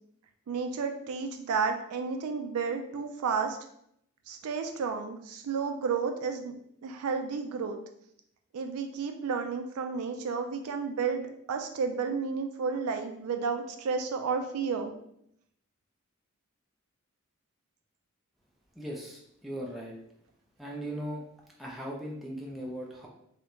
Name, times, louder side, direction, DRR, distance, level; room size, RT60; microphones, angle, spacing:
voice 1, 0.5-3.6 4.3-6.5 6.8-7.8 8.5-14.9, right 5 dB, 90° right, 5 dB, 0.4 m, -32 dB
voice 2, 18.8-19.9 20.6-21.2 21.6-23.1, equal, ahead, -4 dB, 0.4 m, -38 dB
2.4 x 2.1 x 2.9 m, 0.73 s
head